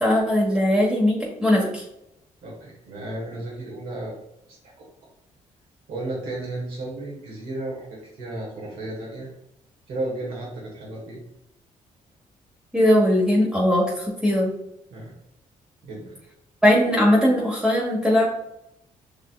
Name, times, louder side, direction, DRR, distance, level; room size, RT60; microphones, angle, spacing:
voice 1, 0.0-1.8 12.7-14.5 16.6-18.3, left 1 dB, 5° right, -5 dB, 1.3 m, -19 dB
voice 2, 2.4-4.1 5.9-7.9 8.2-9.3 9.9-11.2 14.9-15.1 15.8-16.2, right 2 dB, 85° right, -4 dB, 1.4 m, -33 dB
6.8 x 2.7 x 2.3 m, 0.83 s
supercardioid pair, 60°, 15 cm